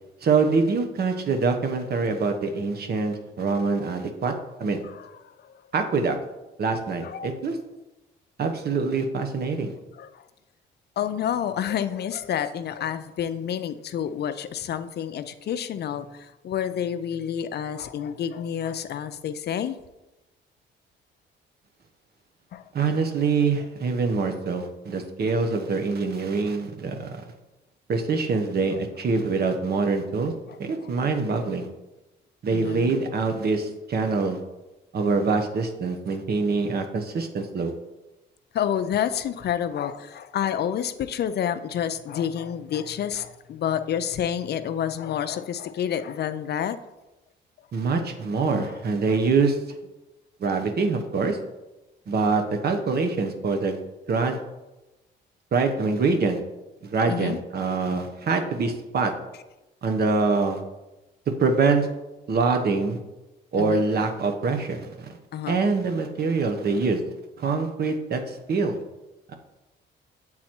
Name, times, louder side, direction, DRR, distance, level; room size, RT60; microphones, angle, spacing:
voice 1, 0.2-4.3 4.6-4.8 5.7-6.2 6.6-7.6 8.4-9.7 22.7-27.1 27.9-30.3 30.6-31.7 32.4-34.4 34.9-37.7 47.7-49.6 50.4-51.4 52.1-53.8 54.1-54.4 55.5-56.4 56.8-59.1 59.8-60.6 61.4-61.9 62.3-63.0 63.5-65.1 65.5-67.0 67.4-68.8, right 4 dB, 55° right, 5 dB, 1.0 m, -24 dB
voice 2, 11.0-19.8 22.5-22.6 32.5-33.0 38.5-46.8 48.7-48.8 57.1-57.4 63.6-63.8 65.3-65.6, left 9 dB, 55° left, 11 dB, 0.5 m, -29 dB
7.5 x 4.0 x 4.4 m, 1.0 s
cardioid pair, 90°, 20 cm